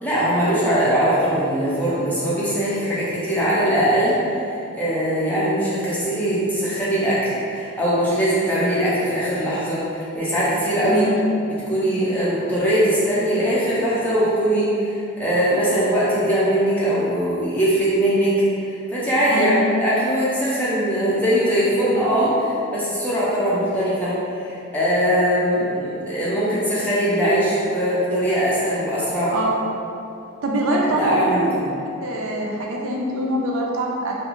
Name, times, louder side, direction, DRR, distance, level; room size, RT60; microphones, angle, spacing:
voice 1, 0.0-11.1 11.7-18.4 18.6-29.3 30.8-31.6, equal, 5° left, -9 dB, 0.4 m, -21 dB
voice 2, 10.8-11.2 19.3-19.6 29.3-29.5 30.4-31.3 32.0-34.2, right 1 dB, 65° right, -1 dB, 0.3 m, -24 dB
2.4 x 2.3 x 2.9 m, 2.6 s
head